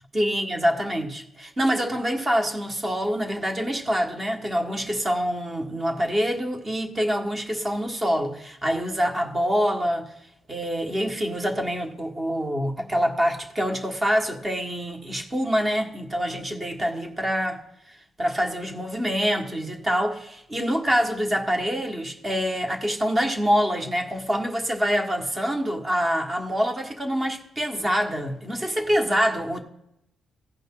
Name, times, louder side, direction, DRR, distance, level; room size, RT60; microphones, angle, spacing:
voice 1, 0.1-10.1 10.5-17.6 18.2-29.6, equal, 20° right, 1.4 m, -25 dB
16.0 x 5.5 x 3.7 m
cardioid pair, 135°, 0 cm